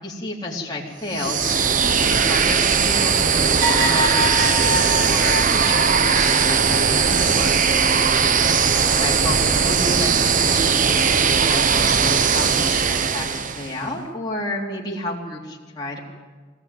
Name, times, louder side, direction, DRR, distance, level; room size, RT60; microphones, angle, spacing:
voice 1, 0.0-7.6 8.7-16.0, left 1 dB, 20° left, -4 dB, 3.7 m, -31 dB
sound 1, 1.1-13.8, right 6 dB, 45° right, 0.9 m, -19 dB
sound 2, 3.6-7.3 7.8-8.6 9.9-10.4, right 1 dB, 90° right, 3.7 m, -26 dB
21.5 x 18.0 x 9.4 m, 1.5 s
head